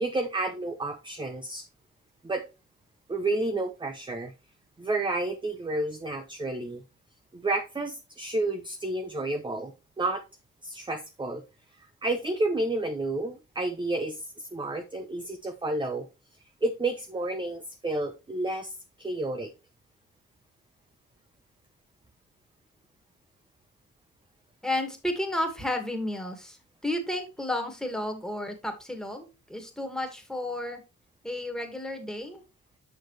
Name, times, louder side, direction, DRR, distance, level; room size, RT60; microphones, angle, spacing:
voice 1, 0.0-1.7 2.2-2.4 3.1-4.3 4.8-6.8 7.3-10.2 10.6-11.4 12.0-16.1 16.6-19.5, right 2 dB, 15° right, 7 dB, 0.7 m, -30 dB
voice 2, 24.6-26.6 26.8-30.8 31.2-32.4, left 1 dB, ahead, 4 dB, 1.9 m, -32 dB
6.6 x 6.1 x 3.2 m, 0.28 s
cardioid pair, 75°, 29 cm